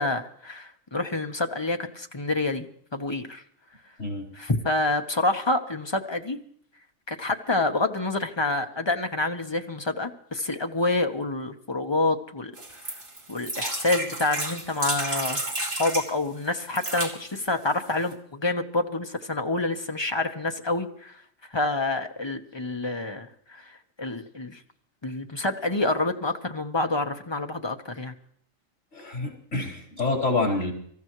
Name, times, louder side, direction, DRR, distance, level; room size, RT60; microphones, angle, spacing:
voice 1, 0.0-2.7 2.9-3.4 4.3-6.4 7.1-12.5 13.3-21.2 21.5-24.6 25.0-28.1, left 2 dB, 25° left, 5 dB, 0.9 m, -27 dB
sound 1, 12.6-16.1 16.6-17.1 17.8-17.9 18.1-18.2, right 2 dB, 40° right, 2.5 m, -31 dB
voice 2, 28.9-30.7, left 3 dB, 75° left, -1 dB, 4.5 m, -27 dB
25.5 x 14.5 x 3.1 m, 0.63 s
omnidirectional pair, 1.3 m